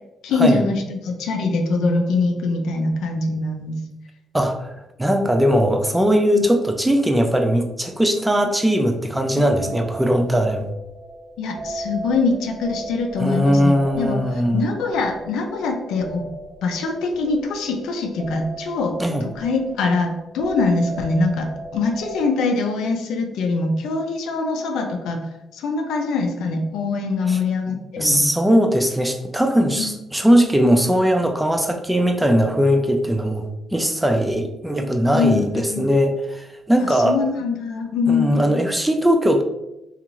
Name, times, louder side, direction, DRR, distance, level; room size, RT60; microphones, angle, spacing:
voice 1, 0.2-3.8 6.3-6.4 9.6-9.7 11.4-16.2 16.6-19.0 19.4-25.2 25.5-28.2 29.8-29.9 35.1-35.8 36.8-38.4, left 3 dB, 85° left, 3 dB, 0.4 m, -23 dB
voice 2, 4.3-4.7 5.0-10.7 13.2-14.7 19.0-19.2 27.3-27.4 28.0-33.5 33.7-37.2 38.1-39.4, equal, 5° right, 4 dB, 0.4 m, -19 dB
sound 1, 9.4-22.3, right 2 dB, 50° right, 1.1 m, -36 dB
2.6 x 2.4 x 2.9 m, 0.92 s
cardioid pair, 90°, 0 cm